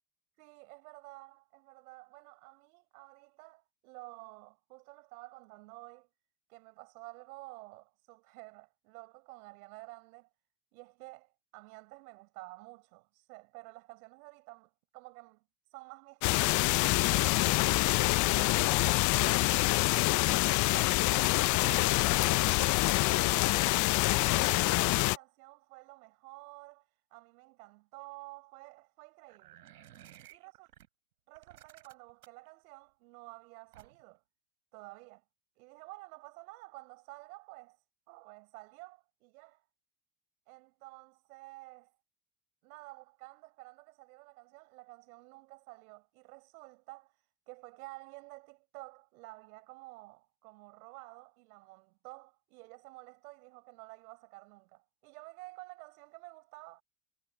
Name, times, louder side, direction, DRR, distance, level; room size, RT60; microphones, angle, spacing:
voice 1, 0.4-6.1 6.5-10.3 10.7-15.4 15.7-16.6 17.6-21.0 21.6-22.2 23.0-29.6 30.3-30.7 31.3-34.2 34.7-35.2 35.6-37.8 38.1-39.7 40.5-41.9 42.6-47.2 47.5-56.8, right 24 dB, 70° right, 4.6 m, -51 dB
sound 1, 16.2-25.2, left 21 dB, 40° left, 0.6 m, -26 dB
sound 2, 29.3-30.9 31.3-32.5 33.7-34.2, right 12 dB, 90° right, 3.8 m, -55 dB
hypercardioid pair, 95°, 45 cm